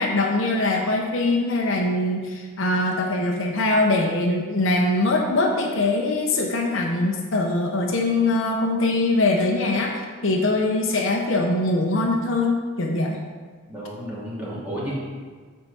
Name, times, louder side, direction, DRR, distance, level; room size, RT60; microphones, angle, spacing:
voice 1, 0.0-13.2, left 2 dB, 60° left, 1 dB, 0.9 m, -22 dB
voice 2, 13.7-14.9, equal, 10° right, -8 dB, 2.7 m, -32 dB
13.0 x 4.7 x 4.3 m, 1.5 s
head